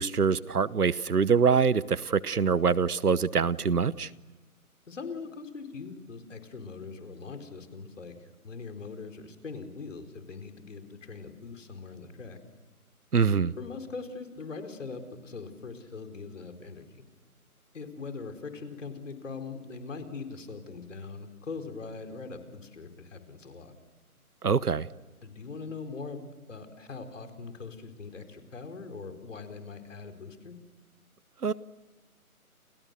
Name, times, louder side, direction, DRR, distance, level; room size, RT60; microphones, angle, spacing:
voice 1, 0.0-4.1 13.1-13.5 24.4-24.9 31.4-31.5, right 6 dB, 85° right, 1.2 m, -24 dB
voice 2, 4.9-8.1 8.4-12.4 13.6-17.0 17.7-23.8 25.2-26.2 26.5-30.6, left 4 dB, 55° left, 4.4 m, -41 dB
30.0 x 28.0 x 6.8 m
figure-of-eight pair, 160°, 44 cm